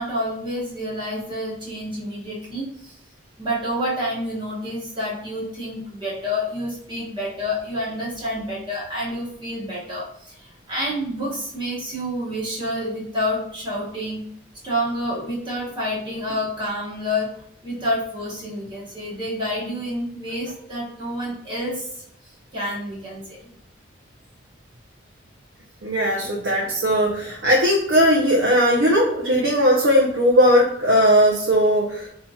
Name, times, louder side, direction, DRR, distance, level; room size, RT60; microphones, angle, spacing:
voice 1, 0.0-3.0 3.4-14.2 14.6-17.3 17.6-21.9 22.5-23.4, equal, 25° right, -6 dB, 1.0 m, -28 dB
voice 2, 25.8-32.1, equal, 70° right, -3 dB, 0.6 m, -18 dB
4.3 x 2.8 x 2.3 m, 0.73 s
head